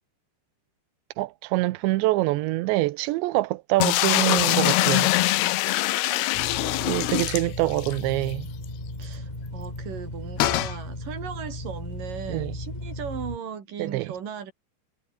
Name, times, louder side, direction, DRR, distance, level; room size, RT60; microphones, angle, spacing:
voice 1, 1.2-5.1 6.9-8.5 12.3-12.6 13.8-14.1, right 19 dB, 90° right, 3.1 m, -25 dB
sound 1, 3.8-8.0 8.3-8.4 8.6-8.7 10.4-10.8, left 18 dB, 75° left, 2.6 m, -23 dB
sound 2, 6.3-13.4, left 1 dB, 10° left, 4.1 m, -36 dB
voice 2, 6.5-7.1 9.0-14.5, right 7 dB, 50° right, 4.9 m, -38 dB
omnidirectional pair, 5.0 m